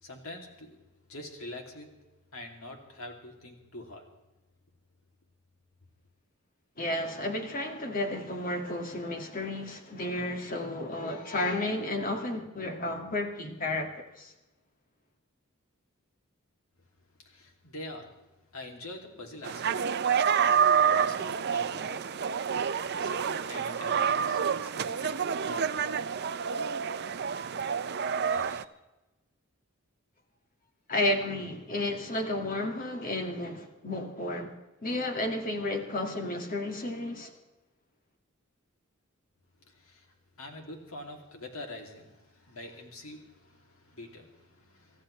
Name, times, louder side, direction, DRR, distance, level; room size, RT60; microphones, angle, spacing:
voice 1, 0.0-0.8 1.1-2.0 2.3-4.1 17.0-18.2 18.5-20.1 20.4-22.6 23.0-25.9 28.3-28.7 39.6-45.0, left 1 dB, 80° left, 2.7 m, -45 dB
voice 2, 6.8-13.9 14.2-14.3 30.9-34.5 34.8-37.3, left 1 dB, 40° left, 2.0 m, -32 dB
sound 1, 19.4-28.6, right 7 dB, 50° right, 0.6 m, -28 dB
28.0 x 14.0 x 3.3 m
head